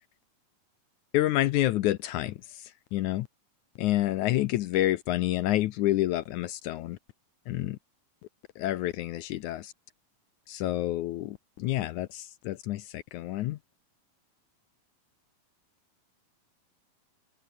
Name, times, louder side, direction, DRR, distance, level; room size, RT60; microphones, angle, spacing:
voice 1, 1.1-3.3 3.8-7.0 7.5-7.8 8.6-9.7 10.5-13.6, left 15 dB, 75° left, 1.8 m, -28 dB
omnidirectional pair, 4.2 m